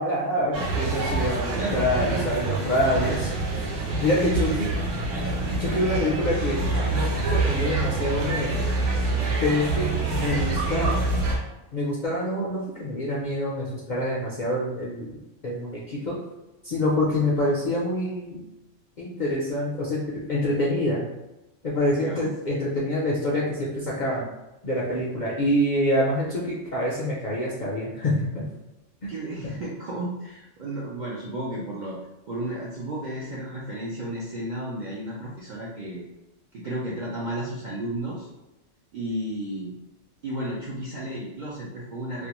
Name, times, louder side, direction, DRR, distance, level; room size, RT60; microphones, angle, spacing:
voice 1, 0.0-3.3 4.0-4.7 5.6-8.6 9.4-11.1 11.7-15.2 15.4-16.2 16.6-18.4 19.0-21.1 21.6-24.3 24.6-28.4, left 1 dB, 60° left, -5 dB, 0.5 m, -26 dB
sound 1, 0.5-11.4, right 3 dB, 80° right, 1.0 m, -26 dB
voice 2, 1.4-2.2 3.0-3.3 4.2-4.7 21.9-22.3 29.1-32.0 32.3-36.1 36.5-38.3 38.9-39.7 40.2-42.3, right 1 dB, 65° right, -6 dB, 0.4 m, -33 dB
2.5 x 2.1 x 2.9 m, 0.97 s
omnidirectional pair, 1.3 m